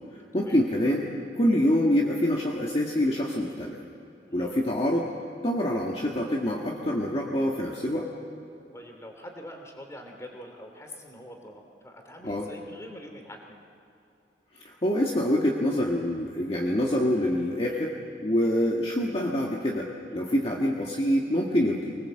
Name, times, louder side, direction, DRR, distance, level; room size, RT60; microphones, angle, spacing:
voice 1, 0.3-1.0 1.3-3.8 4.3-5.1 5.4-8.1 12.2-12.5 14.5-18.0 18.2-22.0, equal, 35° left, -2 dB, 1.6 m, -26 dB
voice 2, 8.7-13.6, equal, 15° left, 3 dB, 2.8 m, -44 dB
24.5 x 20.0 x 7.7 m, 2.7 s
head